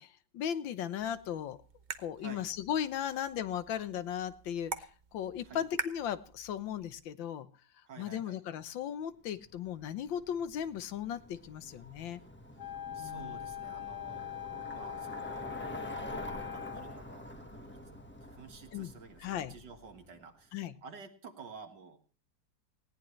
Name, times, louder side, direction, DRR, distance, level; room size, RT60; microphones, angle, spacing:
voice 1, 0.0-1.6 2.0-7.5 8.0-12.2 13.0-13.4 18.7-18.9 19.2-19.5 20.5-20.7, left 9 dB, 80° left, 13 dB, 1.6 m, -37 dB
sound 1, 1.0-7.0, right 5 dB, 45° right, 0.6 m, -45 dB
voice 2, 7.9-8.4 12.9-14.2 14.7-15.5 16.0-16.2 16.5-17.8 18.3-22.0, right 5 dB, 65° right, 5 dB, 2.3 m, -51 dB
Bicycle, 9.3-20.2, equal, 5° left, 1.1 m, -46 dB
Wind instrument woodwind instrument, 12.6-17.0, left 13 dB, 45° left, 1.2 m, -42 dB
19.0 x 17.0 x 3.2 m, 0.39 s
omnidirectional pair, 2.0 m